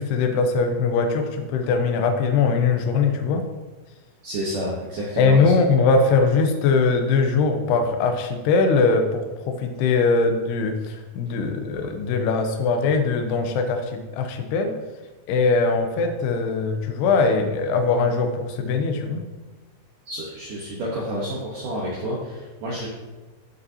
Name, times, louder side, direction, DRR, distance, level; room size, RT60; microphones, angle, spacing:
voice 1, 0.0-3.4 5.2-14.7 15.3-19.2, left 4 dB, 90° left, 4 dB, 2.3 m, -21 dB
voice 2, 4.2-5.5 20.1-22.9, equal, 80° right, -4 dB, 1.8 m, -29 dB
15.0 x 5.4 x 2.8 m, 1.2 s
omnidirectional pair, 5.7 m